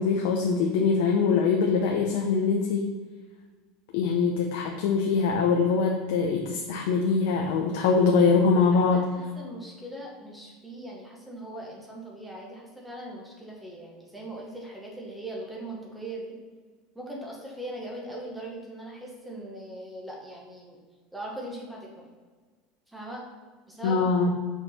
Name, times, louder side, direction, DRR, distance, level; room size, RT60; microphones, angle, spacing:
voice 1, 0.0-2.9 3.9-9.0 23.8-24.3, left 5 dB, 70° left, 1 dB, 0.6 m, -23 dB
voice 2, 8.7-16.3 16.9-20.8 21.1-22.1 22.9-23.2 23.7-24.1, right 1 dB, 5° right, -2 dB, 1.1 m, -40 dB
5.3 x 4.6 x 4.2 m, 1.4 s
cardioid pair, 165°, 0 cm